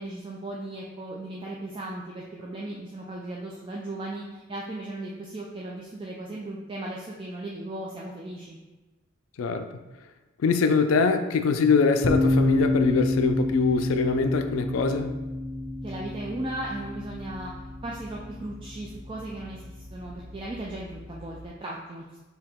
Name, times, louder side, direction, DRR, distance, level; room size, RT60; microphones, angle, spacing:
voice 1, 0.0-8.6 15.8-17.5 17.8-22.2, right 1 dB, 25° right, -3 dB, 0.4 m, -36 dB
voice 2, 9.4-9.7 10.4-15.1, left 4 dB, 90° left, 8 dB, 0.4 m, -23 dB
sound 1, 12.0-21.5, left 2 dB, 50° left, 0.7 m, -29 dB
4.7 x 2.8 x 3.5 m, 1.1 s
head